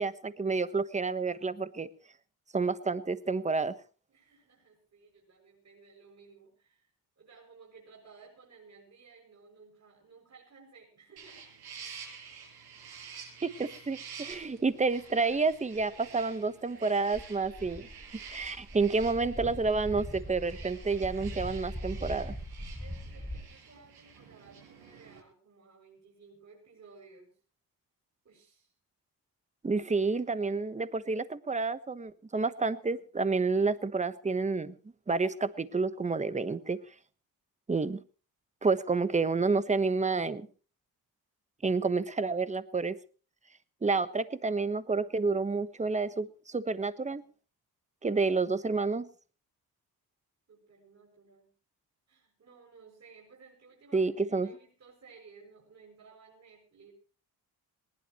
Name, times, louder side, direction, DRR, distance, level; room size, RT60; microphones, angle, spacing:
voice 1, 0.0-1.9 2.5-3.7 13.4-17.9 18.3-22.3 29.6-34.7 35.1-36.8 37.7-38.0 38.6-40.5 41.6-43.0 43.8-47.2 48.0-49.1 53.9-54.5, right 4 dB, 20° right, 13 dB, 1.2 m, -29 dB
voice 2, 4.1-6.9 7.2-11.5 22.8-27.3 28.2-28.7 43.9-44.2 50.5-51.5 52.1-56.9, right 4 dB, 45° right, -2 dB, 7.5 m, -57 dB
sound 1, 11.2-25.2, right 6 dB, 90° right, 7.4 m, -49 dB
sound 2, 14.3-14.4 15.3-15.9 17.1-23.4, equal, ahead, 1.3 m, -41 dB
20.5 x 19.5 x 3.1 m, 0.38 s
cardioid pair, 115°, 37 cm